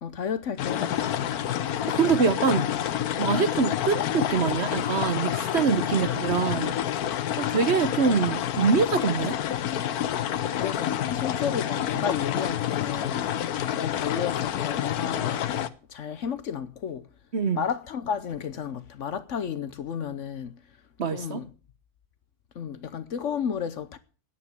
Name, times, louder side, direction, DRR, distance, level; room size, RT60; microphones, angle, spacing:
voice 1, 0.0-1.2 5.8-6.1 10.4-13.3 13.7-15.4 15.9-17.1 17.5-20.5 21.1-21.5 22.5-24.0, left 7 dB, 60° left, 1.1 m, -32 dB
sound 1, 0.6-15.7, left 10 dB, 75° left, 1.3 m, -28 dB
voice 2, 1.9-2.7 3.2-6.7 7.4-9.4 17.3-17.6 21.0-21.4, right 5 dB, 50° right, 1.1 m, -24 dB
10.0 x 8.3 x 9.5 m
omnidirectional pair, 1.6 m